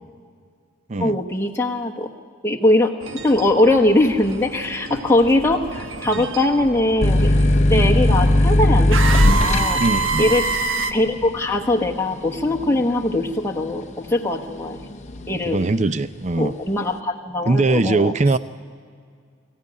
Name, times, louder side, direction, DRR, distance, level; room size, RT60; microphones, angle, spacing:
voice 1, 1.0-2.1 2.4-2.9 3.2-7.3 7.7-9.8 10.2-10.5 10.9-14.8 15.3-15.6 16.4-18.1, left 1 dB, 10° left, -1 dB, 1.1 m, -21 dB
sound 1, 3.0-10.9, right 4 dB, 80° right, 1.2 m, -28 dB
sound 2, 7.0-14.3 14.7-15.4, left 1 dB, 35° left, 0.7 m, -18 dB
voice 2, 9.8-10.3 15.1-16.5 17.5-18.4, right 3 dB, 35° right, 14 dB, 0.5 m, -21 dB
23.0 x 15.0 x 9.8 m, 2.1 s
head